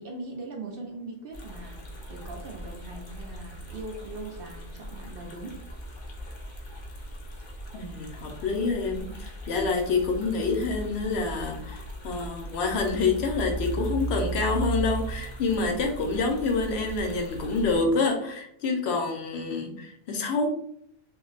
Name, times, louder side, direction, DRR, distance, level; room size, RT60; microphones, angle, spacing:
voice 1, 0.0-1.8 2.1-5.5, right 2 dB, 60° right, 1 dB, 0.7 m, -40 dB
sound 1, 1.3-17.8, right 2 dB, 35° left, 0.5 m, -37 dB
voice 2, 7.7-20.5, left 4 dB, 65° left, 3 dB, 0.8 m, -27 dB
2.4 x 2.1 x 3.8 m, 0.70 s
omnidirectional pair, 1.2 m